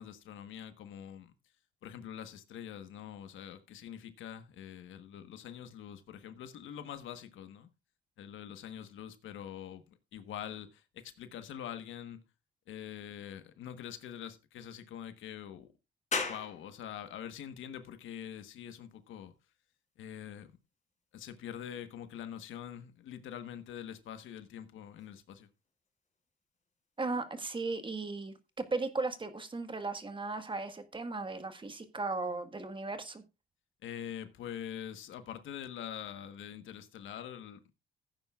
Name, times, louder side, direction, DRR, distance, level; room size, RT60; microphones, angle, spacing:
voice 1, 0.0-1.3 1.8-7.7 8.2-9.8 10.1-12.2 12.7-15.7 16.2-19.3 20.0-20.6 21.1-25.5 33.8-37.6, left 9 dB, 80° left, 1.3 m, -44 dB
sound 1, 16.1-29.2, left 4 dB, 35° left, 4.8 m, -47 dB
voice 2, 27.0-33.2, right 3 dB, 25° right, 1.6 m, -36 dB
16.0 x 9.3 x 2.4 m
cardioid pair, 90°, 20 cm